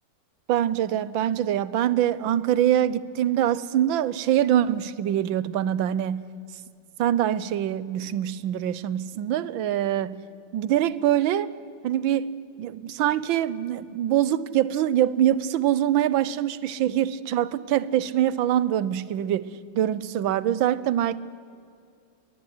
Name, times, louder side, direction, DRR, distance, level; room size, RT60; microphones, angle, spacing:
voice 1, 0.5-6.3 7.0-10.2 10.5-11.5 11.8-12.3 12.6-21.2, right 11 dB, 85° right, 1.6 m, -24 dB
23.0 x 19.0 x 9.6 m
omnidirectional pair, 2.1 m